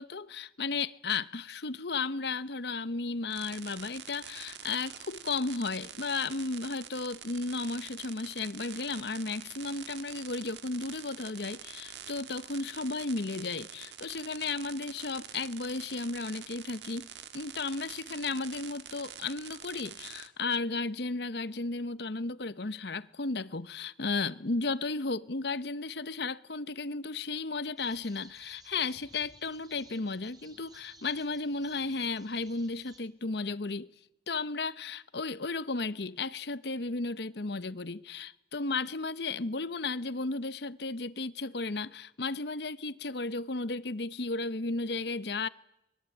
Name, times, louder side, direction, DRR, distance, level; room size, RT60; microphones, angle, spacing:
voice 1, 0.0-17.1 17.3-33.9 34.3-45.5, left 3 dB, 60° left, 0.9 m, -34 dB
sound 1, 3.3-20.3, right 9 dB, 65° right, 1.6 m, -46 dB
sound 2, 27.8-33.0, right 2 dB, 20° right, 4.1 m, -57 dB
24.0 x 22.5 x 9.1 m
head